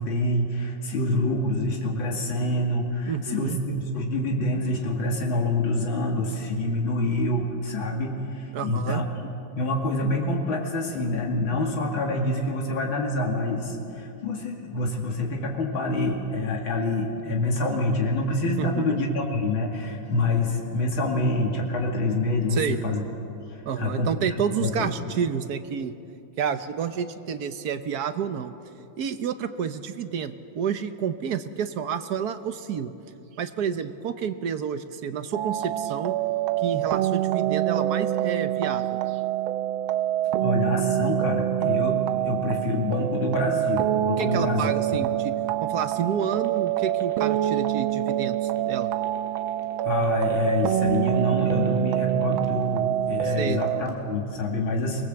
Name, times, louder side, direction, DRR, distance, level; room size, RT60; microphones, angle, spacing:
voice 1, 0.0-9.0 9.5-23.0 23.4-24.1 24.6-24.9 40.4-44.7 49.8-55.0, left 2 dB, 85° left, -1 dB, 3.1 m, -26 dB
voice 2, 3.1-3.6 8.5-9.0 18.6-19.0 22.5-22.8 23.6-25.9 26.4-28.5 29.0-32.9 33.4-36.1 36.6-39.2 44.2-45.3 45.6-48.9 53.2-53.6, right 7 dB, 60° right, 10 dB, 1.3 m, -29 dB
sound 1, 35.3-53.8, right 13 dB, 90° right, 1.5 m, -26 dB
sound 2, 44.8-52.8 53.2-53.9, right 1 dB, 15° right, 3.1 m, -44 dB
24.0 x 19.5 x 7.7 m, 2.7 s
omnidirectional pair, 2.2 m